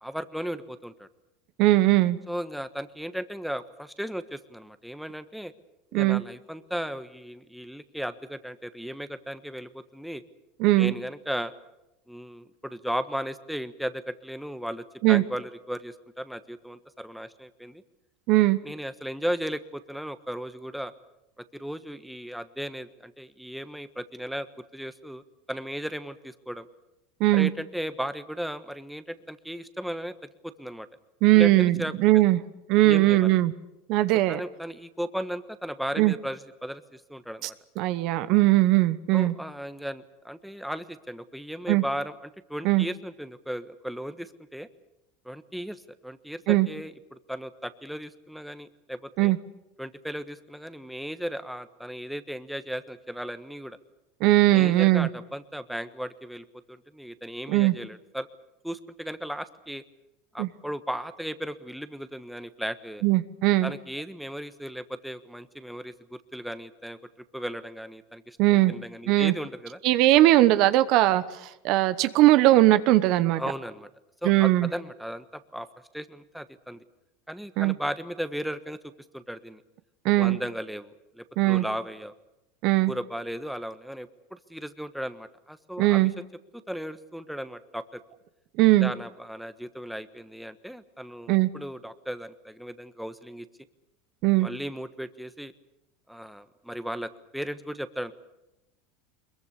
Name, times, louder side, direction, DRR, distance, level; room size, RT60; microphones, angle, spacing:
voice 1, 0.0-1.1 2.3-5.5 5.9-10.2 10.8-11.5 12.1-17.8 18.6-20.9 21.4-24.5 24.7-25.2 25.5-26.7 27.3-30.1 30.4-30.9 31.3-31.9 32.8-33.4 34.3-37.5 39.1-42.1 42.5-44.7 45.2-49.3 49.8-53.8 54.5-58.3 58.6-59.8 60.3-63.0 63.6-67.0 67.3-69.8 73.3-73.9 74.2-75.7 75.9-76.8 77.3-78.8 79.1-79.6 80.2-82.1 82.9-86.3 86.5-88.0 88.8-93.5 94.4-95.5 96.1-98.1, equal, ahead, 11 dB, 1.3 m, -36 dB
voice 2, 1.6-2.2 5.9-6.2 10.6-10.9 15.0-15.2 18.3-18.6 27.2-27.5 31.2-32.4 32.7-33.5 33.9-34.4 36.0-36.1 37.4-37.5 37.8-39.3 41.7-41.8 42.6-42.9 46.5-46.7 49.2-49.4 54.2-55.1 57.5-57.7 60.4-60.5 63.0-63.7 68.4-68.7 69.1-69.3 69.8-73.4 74.2-74.7 77.6-77.7 80.0-80.4 81.4-81.6 82.6-82.9 85.8-86.1 88.6-88.9 91.3-91.5 94.2-94.5, right 17 dB, 60° right, 13 dB, 1.0 m, -20 dB
22.5 x 22.0 x 8.3 m, 0.92 s
hypercardioid pair, 95°, 0 cm